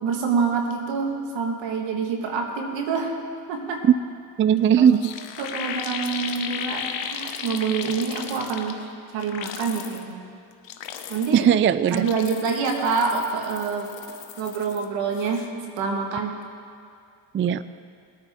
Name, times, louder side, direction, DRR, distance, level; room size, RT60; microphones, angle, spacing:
voice 1, 0.0-3.2 3.5-3.8 4.8-4.9 5.4-8.8 9.1-10.2 11.1-11.5 11.9-13.9 14.4-15.5 15.8-16.4, right 5 dB, 85° right, 3 dB, 1.7 m, -26 dB
voice 2, 4.4-5.1 11.3-12.1 17.3-17.6, right 8 dB, 30° right, 15 dB, 0.4 m, -18 dB
sound 1, 4.6-4.7 4.9-8.9 9.2-10.0 10.5-11.5 11.8-14.8 15.1-15.5, left 8 dB, 80° left, 1.0 m, -35 dB
20.0 x 9.0 x 3.6 m, 2.3 s
supercardioid pair, 60°, 44 cm